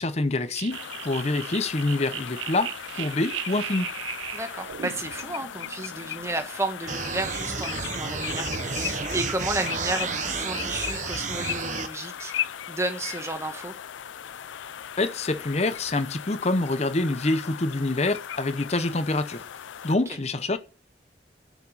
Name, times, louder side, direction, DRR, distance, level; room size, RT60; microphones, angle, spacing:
voice 1, 0.0-3.9 15.0-19.4 19.8-20.6, left 2 dB, 35° left, 0.8 m, -26 dB
sound 1, 0.5-6.5, right 11 dB, 85° right, 0.4 m, -38 dB
sound 2, 0.7-20.0, left 10 dB, 90° left, 0.4 m, -37 dB
voice 2, 4.3-13.8 20.1-20.2, right 2 dB, 15° right, 1.2 m, -32 dB
sound 3, 6.9-11.9, right 4 dB, 40° right, 0.9 m, -31 dB
7.1 x 6.0 x 7.2 m
head